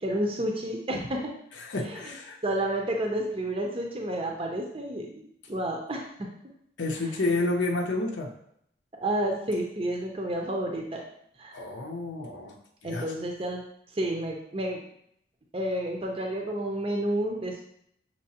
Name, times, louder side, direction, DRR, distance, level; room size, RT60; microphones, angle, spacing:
voice 1, 0.0-1.3 1.8-2.1 2.4-5.2 5.5-6.3 9.0-11.0 11.4-11.7 12.8-13.6 13.9-14.8 15.5-17.6, right 1 dB, 30° right, 1 dB, 0.5 m, -30 dB
voice 2, 1.6-2.4 6.8-8.4 11.5-12.6 12.8-13.1, left 2 dB, 85° left, 1 dB, 0.7 m, -30 dB
6.4 x 2.9 x 2.8 m, 0.71 s
head